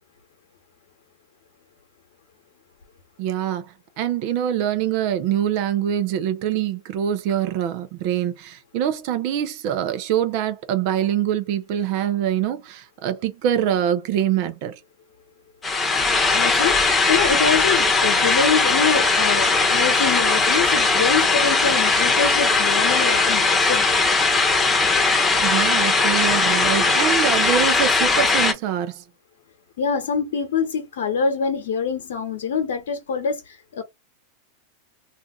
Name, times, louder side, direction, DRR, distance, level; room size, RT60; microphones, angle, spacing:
voice 1, 3.2-14.8 25.4-29.0, right 10 dB, 55° right, 0.7 m, -24 dB
sound 1, 15.6-28.5, left 3 dB, 15° left, 1.0 m, -19 dB
voice 2, 16.3-23.9 29.8-33.8, left 6 dB, 75° left, 0.8 m, -25 dB
2.5 x 2.5 x 3.6 m
hypercardioid pair, 115°, 0 cm